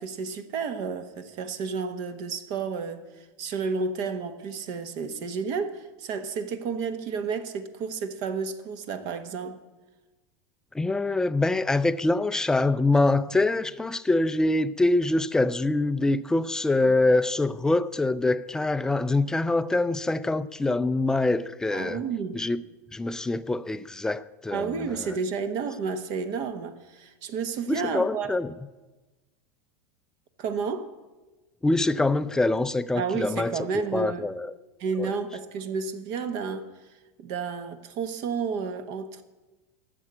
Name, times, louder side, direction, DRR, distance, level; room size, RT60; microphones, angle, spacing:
voice 1, 0.0-9.6 21.7-22.4 24.5-28.3 30.4-30.9 32.9-34.3 34.8-36.7 37.2-39.2, right 5 dB, 50° right, 1.2 m, -31 dB
voice 2, 10.7-22.0 22.3-22.6 22.9-25.2 27.7-28.5 31.6-33.6 33.9-34.5 35.0-35.1, left 2 dB, 5° left, 0.4 m, -24 dB
12.0 x 7.0 x 8.7 m
supercardioid pair, 130°, 9 cm